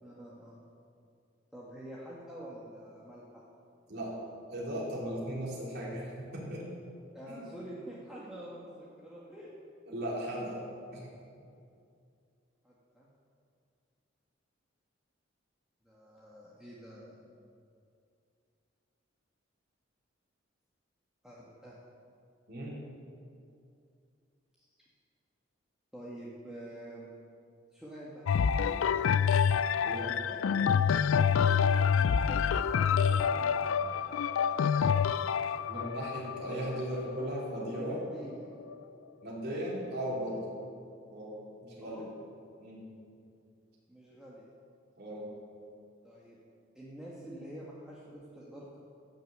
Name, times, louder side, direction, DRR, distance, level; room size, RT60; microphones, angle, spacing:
voice 1, 0.0-0.6 1.5-3.4 7.1-9.5 12.6-13.1 15.8-17.2 21.2-21.8 24.6-24.7 25.9-27.1 27.7-29.4 30.0-30.9 31.4-32.4 32.9-33.9 37.8-38.5 41.8-42.0 43.9-44.5 46.0-46.4 46.7-48.8, right 1 dB, 5° right, -7 dB, 1.5 m, -47 dB
voice 2, 4.5-6.7 7.3-7.5 9.9-10.6 10.9-11.1 22.5-22.8 29.8-30.2 35.7-38.0 39.2-40.5 41.1-42.1 42.6-42.9 45.0-45.3, equal, 55° right, -6 dB, 3.4 m, -37 dB
sound 1, 28.3-38.0 38.7-38.8, left 7 dB, 90° left, 0.4 m, -27 dB
15.0 x 6.6 x 8.0 m, 2.5 s
head